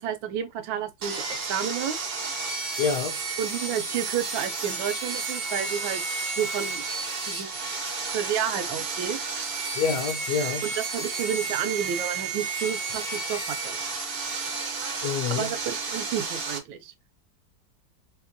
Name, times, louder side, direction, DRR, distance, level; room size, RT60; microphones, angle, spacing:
voice 1, 0.0-2.0 3.4-6.8 7.3-7.6 8.1-9.2 10.6-13.8 15.3-16.9, right 9 dB, 85° right, 1.4 m, -31 dB
Sawing, 1.0-16.6, right 4 dB, 55° right, 0.6 m, -32 dB
voice 2, 2.8-3.2 9.8-10.7 15.0-15.5, left 6 dB, 70° left, 1.1 m, -27 dB
3.4 x 2.9 x 2.5 m
omnidirectional pair, 2.1 m